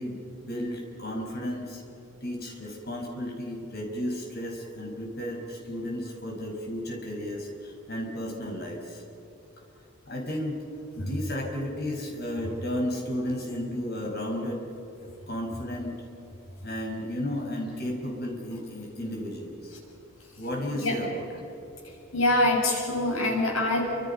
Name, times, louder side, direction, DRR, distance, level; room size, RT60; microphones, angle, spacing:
voice 1, 0.0-1.8 2.2-9.0 10.0-10.6 11.0-14.7 15.3-16.0 16.6-19.7 20.4-21.4, left 1 dB, 50° left, 1 dB, 5.5 m, -33 dB
voice 2, 22.1-23.8, left 1 dB, 80° left, 0 dB, 7.0 m, -24 dB
29.5 x 26.0 x 5.7 m, 3.0 s
head